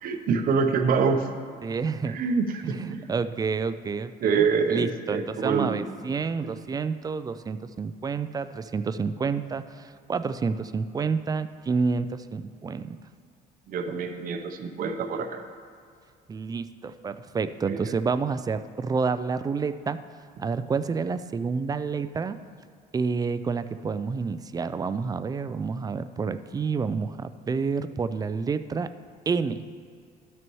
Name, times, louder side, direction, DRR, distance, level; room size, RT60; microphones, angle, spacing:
voice 1, 0.0-1.3 2.0-3.0 4.2-5.9 6.4-6.5 13.7-15.4 17.7-17.9, right 5 dB, 55° right, 6 dB, 0.7 m, -26 dB
voice 2, 1.6-2.2 2.7-13.0 16.3-20.0 20.4-22.4 22.9-28.9 29.3-29.7, right 5 dB, 20° right, 12 dB, 0.3 m, -29 dB
12.5 x 6.2 x 3.0 m, 2.2 s
cardioid pair, 110°, 17 cm